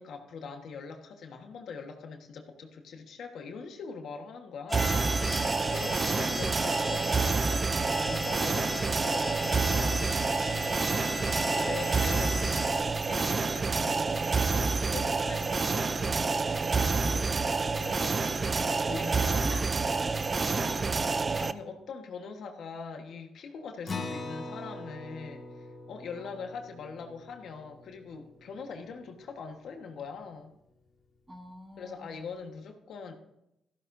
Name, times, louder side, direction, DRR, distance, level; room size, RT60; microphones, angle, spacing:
voice 1, 0.0-10.2 11.6-16.3 16.8-17.4 17.6-19.6 21.4-30.5 31.8-33.1, left 5 dB, 65° left, 4 dB, 1.4 m, -42 dB
sound 1, 4.7-12.8, left 2 dB, 15° left, 2.1 m, -37 dB
sound 2, 4.7-21.5, right 4 dB, 30° right, 0.5 m, -28 dB
voice 2, 19.4-20.1 20.5-21.4 26.2-26.4 31.3-32.2, right 1 dB, 15° right, 4 dB, 1.6 m, -46 dB
Acoustic guitar, 23.9-28.8, left 3 dB, 40° left, 1.8 m, -42 dB
14.0 x 13.5 x 2.7 m, 0.83 s
cardioid pair, 90°, 0 cm